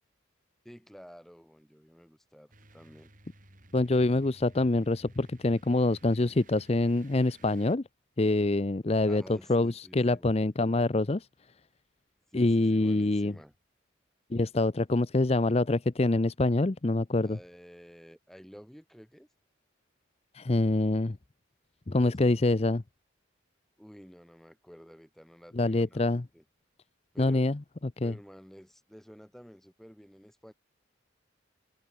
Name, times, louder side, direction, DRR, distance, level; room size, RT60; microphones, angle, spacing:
voice 1, 0.6-3.1 9.1-10.3 12.3-13.5 17.2-19.3 21.9-22.4 23.8-26.4 27.1-27.6 28.0-30.5, equal, ahead, 3.4 m, -51 dB
sound 1, 2.5-7.8, right 2 dB, 45° right, 6.6 m, -57 dB
voice 2, 3.7-7.8 8.2-9.2 9.5-11.3 12.3-13.3 14.3-17.4 20.3-21.2 21.9-22.8 25.5-26.2 27.2-27.6 27.8-28.1, left 2 dB, 30° left, 0.6 m, -25 dB
head